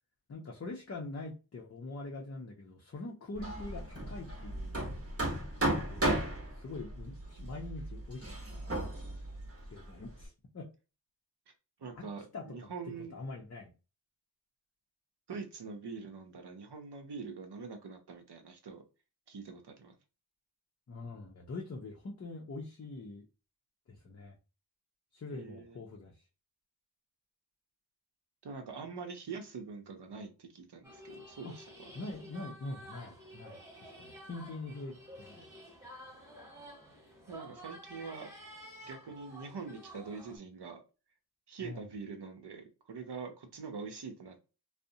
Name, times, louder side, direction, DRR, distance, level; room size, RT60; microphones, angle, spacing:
voice 1, 0.3-4.8 5.7-6.2 6.5-8.7 9.7-10.7 11.9-12.1 12.3-12.7 13.1-13.7 20.9-23.3 23.9-24.4 25.1-26.2 31.4-31.6 31.9-35.5 41.6-41.9, left 2 dB, 35° left, 0 dB, 0.5 m, -44 dB
Hammer, 3.3-10.2, right 1 dB, 30° right, 0.9 m, -35 dB
voice 2, 11.8-13.1 15.3-18.8 19.3-20.0 25.3-25.8 28.4-31.9 37.3-38.3 38.8-40.8 41.5-44.4, right 5 dB, 65° right, 6 dB, 0.7 m, -44 dB
sound 1, 30.8-40.4, equal, 5° right, 1.0 m, -51 dB
2.5 x 2.1 x 2.7 m, 0.32 s
cardioid pair, 45°, 44 cm